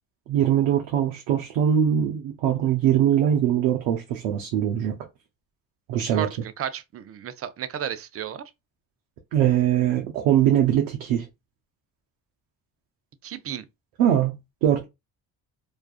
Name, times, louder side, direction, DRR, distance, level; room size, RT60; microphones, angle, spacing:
voice 1, 0.3-5.0 5.9-6.3 9.3-11.3 14.0-14.3 14.6-14.8, right 10 dB, 85° right, 0.6 m, -22 dB
voice 2, 6.1-8.4 13.2-13.6, right 9 dB, 35° right, 0.4 m, -33 dB
2.4 x 2.3 x 2.3 m
hypercardioid pair, 55°, 48 cm